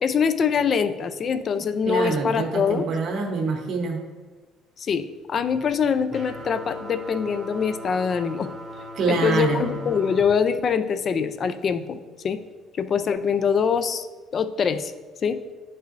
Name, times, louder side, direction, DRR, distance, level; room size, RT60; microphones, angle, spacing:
voice 1, 0.0-2.9 4.8-8.5 9.1-12.0 12.2-12.4 12.7-14.1 14.3-14.9 15.2-15.4, left 6 dB, 30° left, 11 dB, 0.3 m, -24 dB
voice 2, 1.8-4.0 8.9-9.7, right 4 dB, 45° right, 0 dB, 0.9 m, -25 dB
sound 1, 6.1-10.2, equal, 20° right, 0.6 m, -39 dB
10.0 x 5.5 x 2.5 m, 1.3 s
cardioid pair, 165°, 0 cm